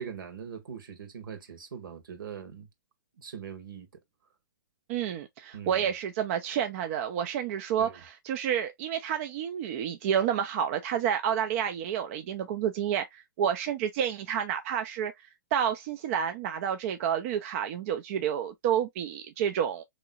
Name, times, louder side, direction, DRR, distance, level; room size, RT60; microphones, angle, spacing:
voice 1, 0.0-2.7 3.2-3.9 5.5-5.9 7.8-8.0, right 7 dB, 75° right, 1.6 m, -41 dB
voice 2, 4.9-15.1 15.5-19.8, right 9 dB, 40° right, 0.5 m, -29 dB
3.7 x 3.1 x 2.3 m
hypercardioid pair, 130°, 11 cm